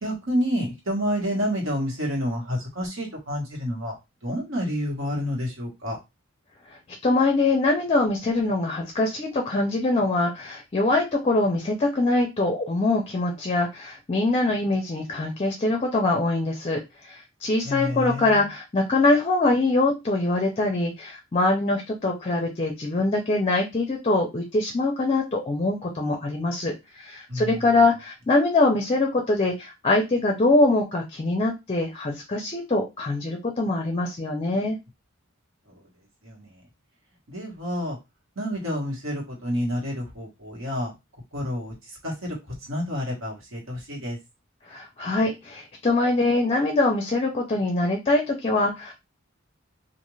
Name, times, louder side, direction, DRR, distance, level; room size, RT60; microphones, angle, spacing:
voice 1, 0.0-3.9 4.2-6.0 17.6-18.4 27.3-27.6 35.7-35.9 36.2-36.5 37.3-38.0 38.4-40.9 41.3-44.2, equal, 80° right, -2 dB, 1.3 m, -29 dB
voice 2, 7.0-34.8 44.7-48.9, left 2 dB, 30° left, 2 dB, 0.5 m, -23 dB
2.5 x 2.5 x 3.1 m, 0.23 s
head